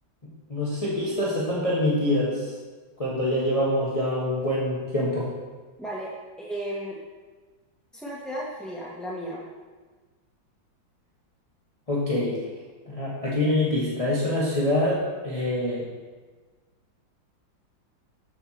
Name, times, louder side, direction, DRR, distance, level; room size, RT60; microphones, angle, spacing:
voice 1, 0.5-2.5 3.0-5.3 11.9-12.4 12.9-15.8, left 1 dB, 20° left, -7 dB, 1.5 m, -25 dB
voice 2, 5.8-6.1 6.4-7.0 7.9-9.4, equal, ahead, -6 dB, 0.8 m, -34 dB
12.5 x 5.6 x 4.3 m, 1.4 s
omnidirectional pair, 2.1 m